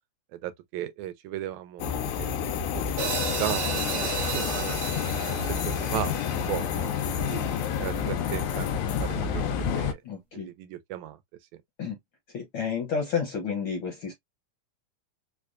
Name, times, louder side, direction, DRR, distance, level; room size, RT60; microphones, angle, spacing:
voice 1, 0.3-4.8 5.2-7.4 7.8-8.7 9.0-10.0 10.3-11.2, right 13 dB, 85° right, 1.9 m, -36 dB
sound 1, 1.8-9.9, left 7 dB, 85° left, 2.0 m, -29 dB
sound 2, 3.0-7.3, right 4 dB, 50° right, 1.0 m, -33 dB
voice 2, 10.0-10.5 11.8-11.9 12.3-14.1, left 6 dB, 65° left, 1.3 m, -30 dB
5.0 x 2.2 x 2.4 m
omnidirectional pair, 3.3 m